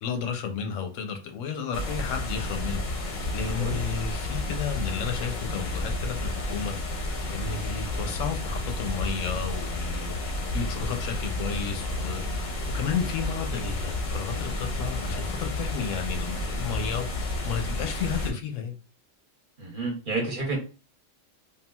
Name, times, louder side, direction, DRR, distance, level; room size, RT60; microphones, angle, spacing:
voice 1, 0.0-6.7 7.3-18.7, left 6 dB, 85° left, 0.9 m, -32 dB
sound 1, 1.7-18.3, left 2 dB, 55° left, 0.6 m, -31 dB
voice 2, 3.4-3.8 19.6-20.6, right 3 dB, 50° right, 0.9 m, -30 dB
3.6 x 2.3 x 2.2 m
omnidirectional pair, 1.3 m